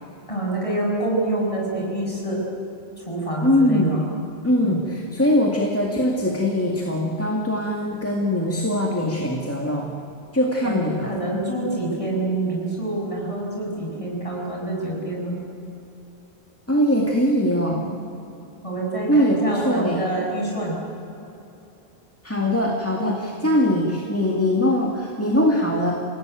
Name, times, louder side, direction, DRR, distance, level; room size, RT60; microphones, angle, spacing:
voice 1, 0.3-2.4 3.0-4.0 4.6-4.8 10.6-10.7 11.0-15.4 17.7-18.0 18.6-20.8 23.4-23.5, right 1 dB, 30° left, -2 dB, 6.6 m, -26 dB
voice 2, 3.4-4.0 4.4-9.9 10.3-11.1 16.7-17.8 19.1-20.0 22.2-25.9, equal, 15° left, -1 dB, 2.1 m, -21 dB
28.0 x 17.0 x 9.2 m, 2.8 s
omnidirectional pair, 1.1 m